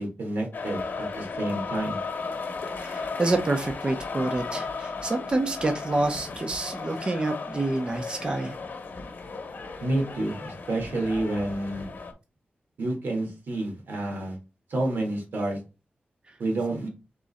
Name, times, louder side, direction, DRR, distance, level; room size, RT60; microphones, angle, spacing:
voice 1, 0.0-2.0 9.8-11.9 12.8-14.3 14.7-15.6 16.4-16.9, right 2 dB, 85° right, 2 dB, 1.6 m, -29 dB
sound 1, 0.5-12.1, left 4 dB, 65° left, 0.8 m, -35 dB
voice 2, 2.8-8.6, right 2 dB, 30° right, 5 dB, 0.6 m, -27 dB
3.7 x 3.0 x 4.0 m, 0.29 s
wide cardioid pair, 150°, 4 cm